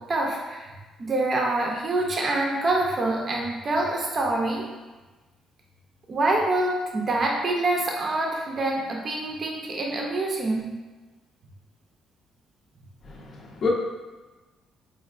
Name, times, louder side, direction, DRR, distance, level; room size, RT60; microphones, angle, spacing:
voice 1, 0.1-4.6 6.1-10.7, right 2 dB, 35° right, -1 dB, 0.5 m, -26 dB
voice 2, 13.1-13.7, left 4 dB, 45° left, -2 dB, 0.6 m, -28 dB
4.2 x 2.4 x 2.5 m, 1.2 s
cardioid pair, 130°, 0 cm